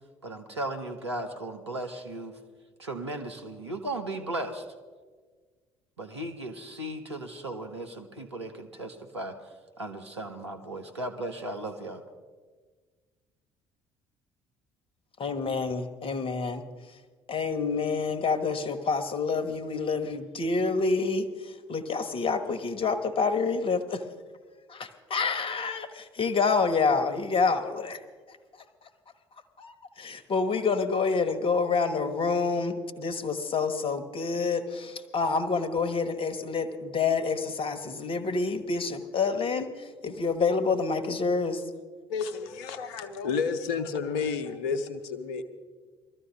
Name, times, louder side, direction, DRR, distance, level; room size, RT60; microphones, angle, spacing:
voice 1, 0.2-2.3 2.8-4.6 6.0-9.4 9.8-12.0, right 1 dB, 85° right, 4 dB, 1.0 m, -36 dB
voice 2, 15.2-16.6 17.3-24.0 24.7-28.0 28.3-28.4 29.6-41.6, left 4 dB, 40° left, 9 dB, 1.3 m, -28 dB
voice 3, 42.1-45.4, left 5 dB, 65° left, 11 dB, 0.9 m, -31 dB
21.5 x 14.0 x 3.5 m, 1.5 s
figure-of-eight pair, 50°, 14 cm